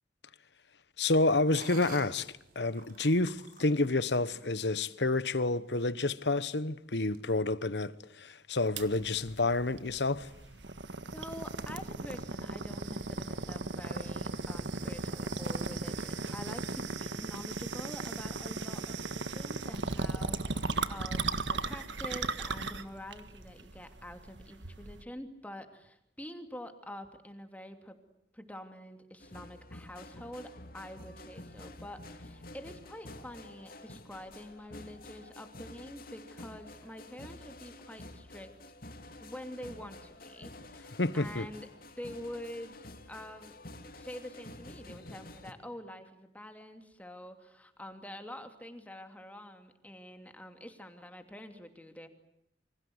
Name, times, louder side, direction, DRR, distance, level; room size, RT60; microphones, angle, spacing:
voice 1, 1.0-10.3 41.0-41.5, left 2 dB, 70° left, 1.2 m, -29 dB
sound 1, 1.5-5.0 5.5-5.6 6.1-6.5 7.1-7.2, right 3 dB, 50° right, 5.8 m, -51 dB
sound 2, 8.8-25.0, right 3 dB, 80° right, 1.7 m, -37 dB
voice 2, 11.1-28.0 28.3-38.5 39.2-41.7 42.0-43.6 43.9-52.1, left 1 dB, 10° left, 2.9 m, -46 dB
sound 3, 29.2-45.5, left 1 dB, 55° left, 2.8 m, -49 dB
29.0 x 25.5 x 8.0 m
head